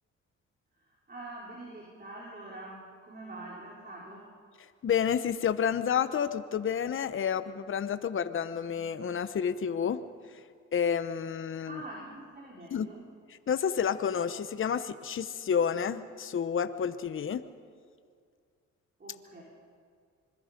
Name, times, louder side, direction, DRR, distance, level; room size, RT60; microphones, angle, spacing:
voice 1, 0.7-4.3 11.6-13.1 19.0-19.4, right 2 dB, 30° right, -3 dB, 4.8 m, -45 dB
voice 2, 4.8-10.0 10.3-10.4 10.7-11.8 12.7-12.9 13.5-17.4, left 7 dB, 45° left, 11 dB, 1.0 m, -30 dB
25.5 x 22.0 x 5.3 m, 2.1 s
cardioid pair, 90°, 30 cm